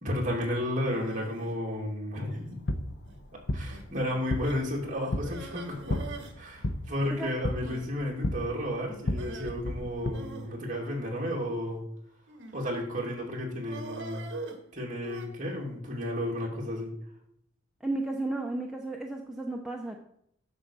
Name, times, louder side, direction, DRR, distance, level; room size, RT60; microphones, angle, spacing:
voice 1, 0.0-2.5 3.5-6.0 6.4-11.8 12.5-14.3 14.7-16.9, left 1 dB, 40° right, -2 dB, 2.4 m, -32 dB
sound 1, 0.9-1.5 2.3-2.7 3.0-3.2 3.7-3.8 4.4-4.7 5.2-6.4 6.6-6.7 7.0-7.1 7.6-7.9 9.1-9.5 10.1-11.5 12.3-12.7 13.7-15.3, right 3 dB, 60° right, 1.4 m, -43 dB
sound 2, 2.3-10.1, left 1 dB, 55° left, 0.8 m, -34 dB
voice 2, 17.8-20.0, right 2 dB, 5° right, 0 dB, 0.6 m, -33 dB
9.8 x 4.3 x 6.9 m, 0.72 s
head